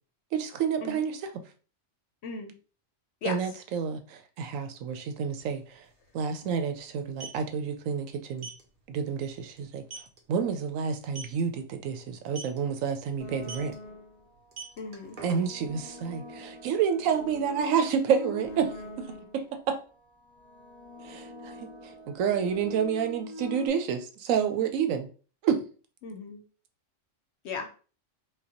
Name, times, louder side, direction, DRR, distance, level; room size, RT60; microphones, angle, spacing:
voice 1, 0.3-1.3 3.2-5.9 6.1-8.5 8.9-9.8 10.3-13.7 15.2-19.1 19.3-19.8 21.0-25.1 25.4-25.6, right 7 dB, 80° right, 1.0 m, -29 dB
voice 2, 2.2-2.5 3.2-3.4 14.8-15.2 26.0-26.4 27.4-27.7, left 5 dB, 60° left, 0.9 m, -36 dB
sound 1, 5.4-5.5 5.7-5.9 6.9-7.4 8.4-8.6 9.1-9.2 9.6-9.7 9.9-10.2 11.0-11.4 12.3-12.6 13.4-13.7 14.4-15.7, right 4 dB, 45° right, 1.0 m, -41 dB
sound 2, 13.2-14.3 15.0-19.5 20.3-23.7, equal, 20° right, 1.9 m, -42 dB
4.8 x 2.2 x 2.9 m
omnidirectional pair, 1.4 m